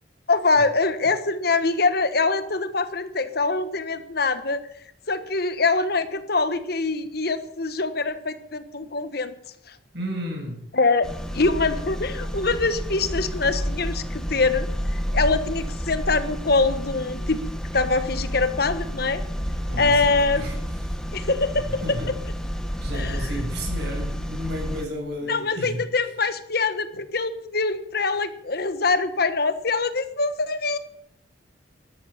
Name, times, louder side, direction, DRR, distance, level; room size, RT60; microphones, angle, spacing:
voice 1, 0.3-4.6 5.1-9.3 9.7-9.8 10.7-11.1 11.3-17.4 17.7-19.2 19.8-20.6 21.1-21.8 22.9-23.3 25.3-30.8, left 3 dB, 60° left, 11 dB, 1.3 m, -24 dB
voice 2, 9.9-10.7 19.7-20.0 20.4-20.5 21.8-22.1 22.8-25.9, equal, 65° right, 0 dB, 7.5 m, -32 dB
sound 1, 11.0-24.8, equal, 5° left, 1.7 m, -30 dB
13.0 x 12.0 x 8.5 m, 0.70 s
head